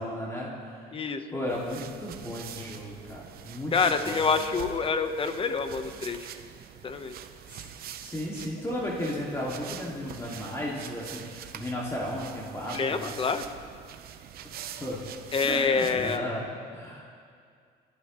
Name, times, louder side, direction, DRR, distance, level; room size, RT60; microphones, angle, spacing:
voice 1, 0.0-4.2 7.5-7.6 8.0-13.1 14.8-15.0 15.4-16.5 16.7-17.0, left 1 dB, 15° left, -5 dB, 2.2 m, -34 dB
voice 2, 0.9-1.2 3.7-6.3 6.8-7.2 12.7-13.4 15.3-16.3, left 5 dB, 30° left, 8 dB, 1.0 m, -27 dB
sound 1, 1.5-16.2, right 9 dB, 65° right, 0.8 m, -44 dB
28.0 x 11.5 x 3.1 m, 2.2 s
cardioid pair, 110°, 17 cm